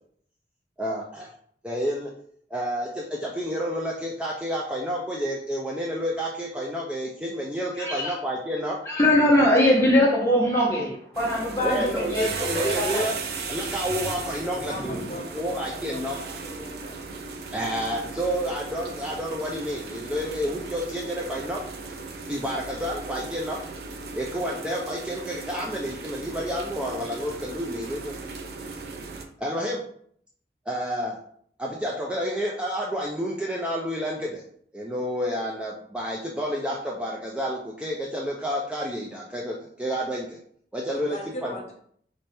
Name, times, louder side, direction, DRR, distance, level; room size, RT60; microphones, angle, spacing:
voice 1, 0.8-1.3 1.6-2.1 2.5-8.8 11.6-13.1 13.5-16.2 17.5-21.6 22.3-23.6 24.1-28.1 29.4-29.8 30.7-31.2 31.6-34.4 34.7-40.4 40.7-41.5, equal, 5° right, -3 dB, 0.4 m, -30 dB
voice 2, 7.8-8.1 8.8-13.1, left 1 dB, 15° left, -4 dB, 1.1 m, -22 dB
sound 1, 11.1-29.2, right 4 dB, 60° right, 0.6 m, -36 dB
voice 3, 14.4-16.9 40.9-41.7, equal, 40° left, 0 dB, 0.9 m, -39 dB
3.4 x 3.2 x 4.2 m, 0.63 s
head